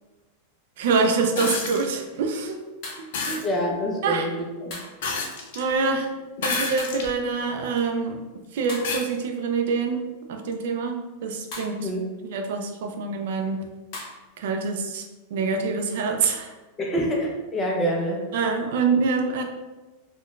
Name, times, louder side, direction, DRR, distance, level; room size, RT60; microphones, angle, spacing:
sound 1, 0.8-1.0 2.8-3.1 4.7-5.0 6.8-7.2 8.7-9.2 11.5-11.8 13.9-14.2, left 2 dB, 40° left, 0.9 m, -39 dB
voice 1, 0.8-2.6 3.3-3.4 4.0-4.3 5.6-6.1 6.4-8.2 8.5-11.9 12.3-13.6 14.4-15.0 15.3-16.5 18.3-19.4, right 4 dB, 65° right, 4 dB, 0.4 m, -25 dB
sound 2, 1.4-1.9 3.1-3.5 5.0-5.6 6.4-7.1 7.8-7.9 8.8-9.1 10.5-10.6, left 4 dB, 65° left, 0.5 m, -29 dB
voice 2, 3.4-4.3 4.6-4.8 11.8-12.0 16.8-18.2, equal, 15° left, -1 dB, 0.5 m, -26 dB
3.7 x 2.2 x 2.4 m, 1.2 s
supercardioid pair, 160°, 0 cm